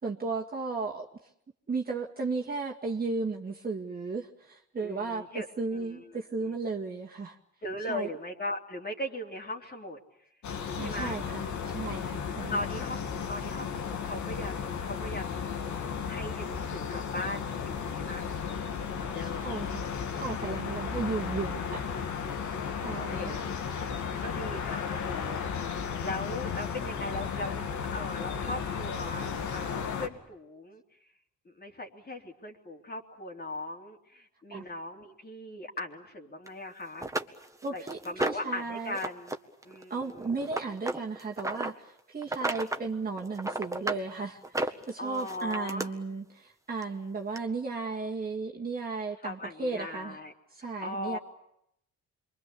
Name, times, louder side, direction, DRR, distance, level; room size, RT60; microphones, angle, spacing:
voice 1, 0.0-1.1 1.7-7.4 7.9-8.1 10.8-12.6 19.2-21.9 22.8-23.3 34.5-34.7 37.6-39.0 39.9-50.2 50.5-51.2, right 4 dB, 30° right, -2 dB, 2.1 m, -35 dB
voice 2, 4.8-5.5 5.7-6.5 7.6-10.0 10.8-11.2 12.4-18.3 18.9-19.5 22.6-23.4 23.7-23.9 24.2-30.8 31.4-37.1 37.7-39.3 39.6-40.3 45.0-45.9 49.2-50.3 50.6-51.2, left 1 dB, 30° left, 1 dB, 3.3 m, -39 dB
sound 1, 10.4-30.1, left 6 dB, 70° left, 2.6 m, -34 dB
sound 2, 36.5-36.6 37.0-38.6 38.9-39.4 39.6-41.7 42.2-42.9 43.2-44.0 44.4-45.9 46.8-46.9 47.4-47.5, right 2 dB, 10° right, 1.8 m, -33 dB
27.0 x 23.5 x 8.5 m, 0.77 s
cardioid pair, 90°, 30 cm